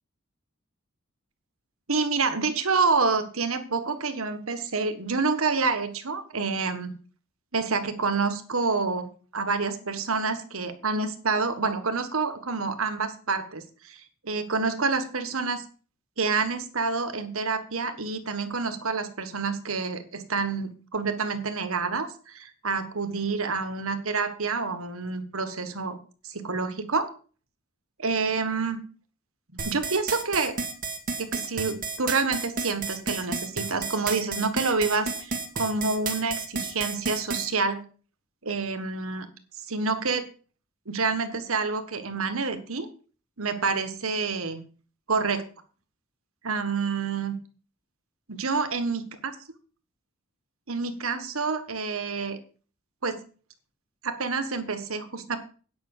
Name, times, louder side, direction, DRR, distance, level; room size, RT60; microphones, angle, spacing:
voice 1, 1.9-7.0 7.5-15.6 16.2-26.0 26.2-27.1 28.0-28.8 29.5-30.6 31.2-37.8 38.4-39.3 39.7-40.3 40.9-42.9 43.4-44.6 45.1-45.5 46.4-47.4 48.3-49.0 50.7-52.4 53.0-53.2 54.0-55.4, right 4 dB, 80° right, 9 dB, 1.5 m, -28 dB
sound 1, 29.6-37.5, right 4 dB, 40° right, 2.0 m, -31 dB
9.5 x 5.8 x 8.1 m, 0.40 s
head